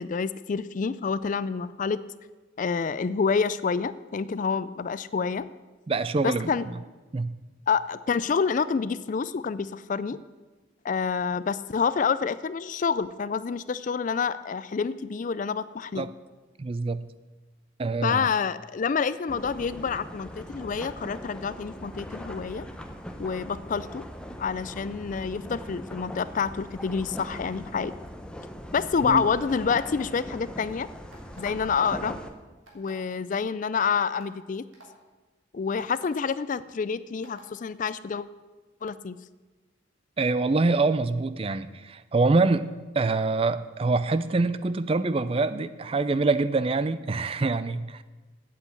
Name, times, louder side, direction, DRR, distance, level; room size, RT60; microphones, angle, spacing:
voice 1, 0.0-2.0 2.6-5.5 6.2-6.7 7.7-10.2 10.8-16.1 18.0-22.6 23.2-24.0 24.4-27.9 28.7-30.9 31.4-32.2 32.7-34.7 35.5-38.3 38.8-39.2, left 5 dB, 40° left, 16 dB, 0.4 m, -28 dB
voice 2, 5.9-6.5 7.1-7.3 16.0-16.1 16.6-17.1 17.8-18.3 29.0-29.2 40.2-48.0, right 3 dB, 30° right, 15 dB, 0.4 m, -25 dB
sound 1, 19.3-32.3, equal, 5° left, 0.7 m, -40 dB
sound 2, 29.5-29.9 31.1-31.5 32.7-32.9 33.7-33.8 34.2-34.3 34.7-34.9 35.8-36.0 37.2-37.5, right 2 dB, 85° right, 3.2 m, -51 dB
8.4 x 8.3 x 8.4 m, 1.2 s
head